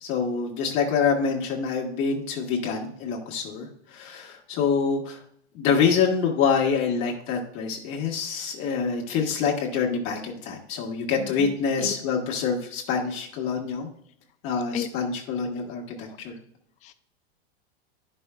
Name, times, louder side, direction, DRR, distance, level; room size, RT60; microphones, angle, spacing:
voice 1, 0.0-5.2 5.5-13.9 14.4-16.3, left 6 dB, 40° left, 0 dB, 1.4 m, -26 dB
voice 2, 11.2-11.9 14.7-14.9 16.1-16.2 16.8-16.9, left 11 dB, 25° left, 10 dB, 0.4 m, -34 dB
10.5 x 5.5 x 2.3 m, 0.66 s
hypercardioid pair, 125°, 32 cm